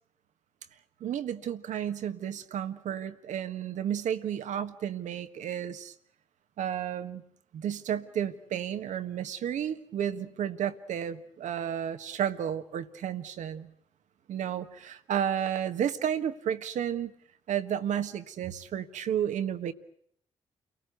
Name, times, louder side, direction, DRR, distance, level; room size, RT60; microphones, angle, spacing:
voice 1, 1.0-5.9 6.6-7.2 7.5-13.7 14.3-17.1 17.5-19.7, right 9 dB, 75° right, 10 dB, 1.5 m, -32 dB
29.5 x 19.0 x 8.2 m, 0.67 s
hypercardioid pair, 45°, 13 cm